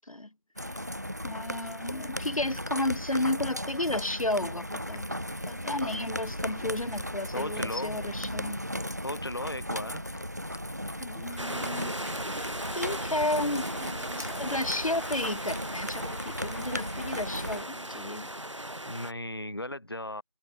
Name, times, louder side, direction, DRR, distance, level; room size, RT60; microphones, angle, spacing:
sound 1, 0.6-17.6, equal, 30° right, 1.1 m, -36 dB
voice 1, 1.2-5.1 5.5-8.6 11.0-12.1 12.7-18.3, left 1 dB, 80° left, 1.2 m, -32 dB
sound 2, 2.3-15.4, left 4 dB, 5° left, 4.5 m, -59 dB
voice 2, 7.3-8.0 9.0-10.0 18.9-20.2, left 1 dB, 45° left, 0.6 m, -36 dB
sound 3, 11.4-19.1, right 1 dB, 60° right, 2.6 m, -37 dB
figure-of-eight pair, 175°, 17 cm